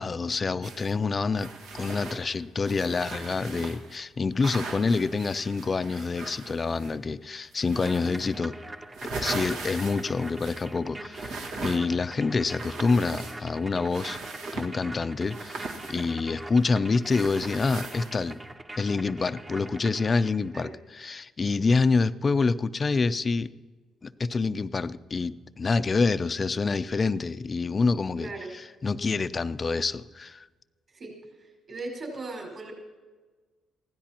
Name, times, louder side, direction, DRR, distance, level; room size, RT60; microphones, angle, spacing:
voice 1, 0.0-8.5 9.0-14.2 14.5-18.4 18.8-23.5 24.0-30.5, left 4 dB, 35° left, 14 dB, 0.5 m, -27 dB
sound 1, 0.6-0.9 1.3-4.0 4.4-7.1 7.5-8.4 8.7-10.8 11.1-12.1 12.4-13.6 13.9-14.7 15.3-16.6 17.1-18.4, right 3 dB, 85° right, 1.7 m, -39 dB
sound 2, 7.8-20.6, right 2 dB, 20° right, 0.9 m, -43 dB
voice 2, 28.1-28.5 30.9-31.1 31.4-32.7, right 2 dB, 50° right, 0 dB, 5.1 m, -38 dB
22.5 x 16.0 x 3.0 m, 1.4 s
cardioid pair, 90°, 0 cm